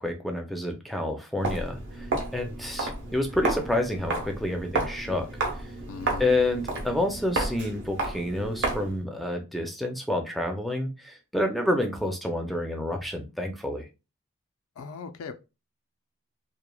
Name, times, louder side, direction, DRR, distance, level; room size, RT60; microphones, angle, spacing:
voice 1, 0.0-2.1 2.3-5.3 6.2-13.9, left 1 dB, ahead, 0.4 m, -29 dB
Walk footsteps, 1.4-9.0, right 2 dB, 55° right, 0.7 m, -32 dB
voice 2, 5.9-6.3 14.8-15.3, left 5 dB, 75° left, 0.4 m, -38 dB
3.0 x 2.0 x 2.2 m
head